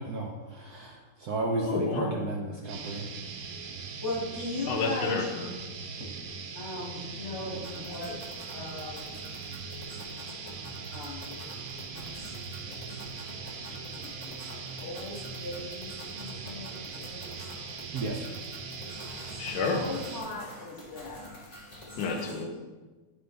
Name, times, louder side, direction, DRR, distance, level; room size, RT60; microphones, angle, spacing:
voice 1, 0.0-3.1 17.9-18.3, right 2 dB, 65° right, 0 dB, 1.0 m, -33 dB
voice 2, 1.6-2.3 4.7-5.5 7.1-7.2 13.7-13.9 19.4-19.8 22.0-22.5, left 4 dB, 55° left, 3 dB, 1.2 m, -31 dB
sound 1, 2.7-20.2, right 5 dB, 80° right, 1.7 m, -40 dB
voice 3, 4.0-5.2 6.6-8.1 8.5-9.1 10.9-11.4 12.6-12.7 13.8-15.9 16.1-17.3 19.7-21.2, left 2 dB, 85° left, -5 dB, 3.1 m, -38 dB
sound 2, 7.5-22.4, left 1 dB, 35° left, 0.6 m, -48 dB
11.5 x 3.9 x 3.3 m, 1.3 s
omnidirectional pair, 2.4 m